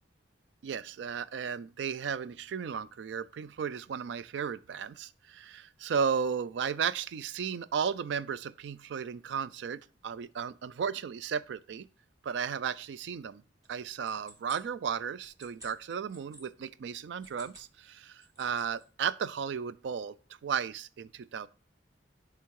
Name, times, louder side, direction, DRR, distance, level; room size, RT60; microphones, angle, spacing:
voice 1, 0.6-11.9 12.2-13.4 13.7-20.1 20.4-21.5, right 7 dB, 70° right, 0.3 m, -34 dB
sound 1, 13.6-16.4 17.1-17.7 18.0-18.8, right 1 dB, 20° right, 1.6 m, -54 dB
8.2 x 3.4 x 4.6 m
head